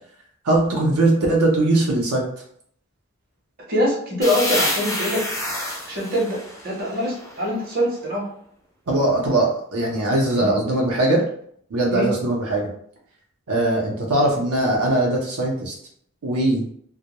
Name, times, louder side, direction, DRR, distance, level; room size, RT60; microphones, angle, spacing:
voice 1, 0.4-2.3 8.9-11.2 11.7-12.7 13.5-15.7 16.2-16.6, right 2 dB, 85° right, -1 dB, 0.6 m, -20 dB
voice 2, 3.7-5.2 5.8-6.4 6.6-8.2 10.3-10.5 11.9-12.1, equal, 40° right, -3 dB, 0.6 m, -23 dB
sound 1, 4.2-7.8, left 1 dB, 15° left, 0.3 m, -28 dB
2.2 x 2.0 x 2.9 m, 0.65 s
head